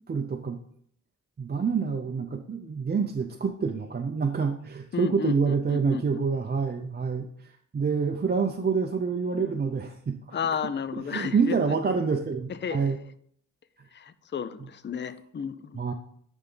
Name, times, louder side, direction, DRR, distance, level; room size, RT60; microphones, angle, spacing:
voice 1, 0.1-0.6 1.4-7.3 7.7-10.4 10.9-13.0 15.7-15.9, right 5 dB, 30° right, 4 dB, 0.6 m, -27 dB
voice 2, 4.9-6.3 10.3-11.7 12.5-13.0 13.9-15.8, left 7 dB, 35° left, 14 dB, 0.5 m, -33 dB
10.5 x 3.6 x 3.8 m, 0.64 s
cardioid pair, 80°, 31 cm